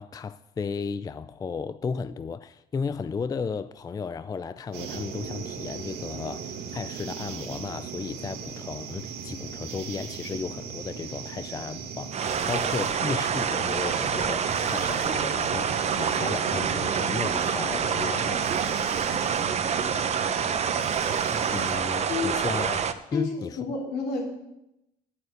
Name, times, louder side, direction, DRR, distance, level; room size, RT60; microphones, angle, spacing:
voice 1, 0.0-12.2 12.5-18.5 21.5-22.8 23.1-23.6, left 5 dB, 20° left, 0.4 m, -34 dB
sound 1, 4.7-21.8, right 6 dB, 75° right, 1.7 m, -37 dB
sound 2, 12.1-22.9, right 7 dB, 40° right, 0.9 m, -27 dB
voice 2, 23.1-24.2, left 4 dB, 75° left, 3.5 m, -30 dB
9.5 x 9.1 x 8.0 m
cardioid pair, 110°, 17 cm